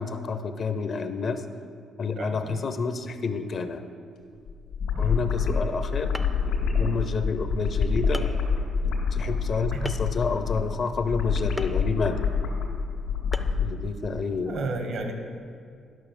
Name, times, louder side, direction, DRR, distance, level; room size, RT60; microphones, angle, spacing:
voice 1, 0.0-1.4 2.0-3.8 5.0-8.2 9.1-12.2 13.6-14.6, left 4 dB, 50° left, 9 dB, 0.7 m, -29 dB
voice 2, 2.1-2.7 4.9-5.2 9.7-10.0 14.4-15.1, right 3 dB, 70° right, 5 dB, 1.5 m, -33 dB
sound 1, 4.5-13.7, left 5 dB, 85° left, 2.1 m, -27 dB
sound 2, 5.7-5.8 6.1-6.5 7.3-7.4 8.1-8.4 9.8-10.2 11.6-11.8 13.3-13.7, equal, ahead, 0.5 m, -37 dB
11.0 x 5.7 x 6.8 m, 2.3 s
cardioid pair, 90°, 0 cm